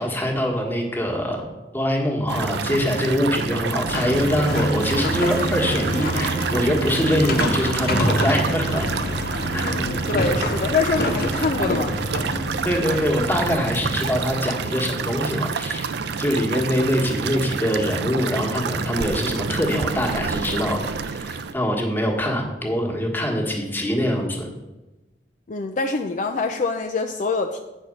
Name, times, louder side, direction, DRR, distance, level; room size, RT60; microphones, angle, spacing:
voice 1, 0.0-1.4 1.7-8.9 9.5-9.8 12.6-24.5, equal, 10° left, 0 dB, 1.4 m, -24 dB
sound 1, 2.3-21.5, right 5 dB, 70° right, 0.5 m, -28 dB
sound 2, 3.9-14.2, left 1 dB, 60° left, 1.0 m, -27 dB
voice 2, 9.6-12.0 25.5-27.6, left 4 dB, 45° left, 4 dB, 0.4 m, -25 dB
8.4 x 4.2 x 6.4 m, 1.1 s
head